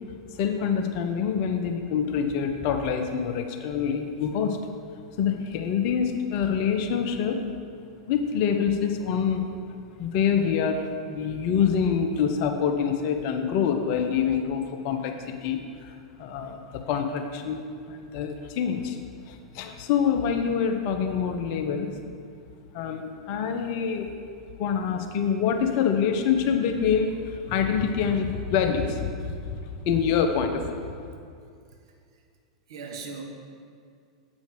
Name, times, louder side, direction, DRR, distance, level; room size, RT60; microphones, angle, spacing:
voice 1, 0.3-4.6 5.2-7.4 8.1-9.5 10.0-19.0 19.3-21.9 22.7-24.1 24.6-30.8, left 7 dB, 45° left, 5 dB, 0.7 m, -26 dB
voice 2, 31.7-32.2 32.7-33.2, right 5 dB, 55° right, 2 dB, 1.1 m, -40 dB
7.6 x 5.2 x 4.9 m, 2.3 s
figure-of-eight pair, 90°, 3 cm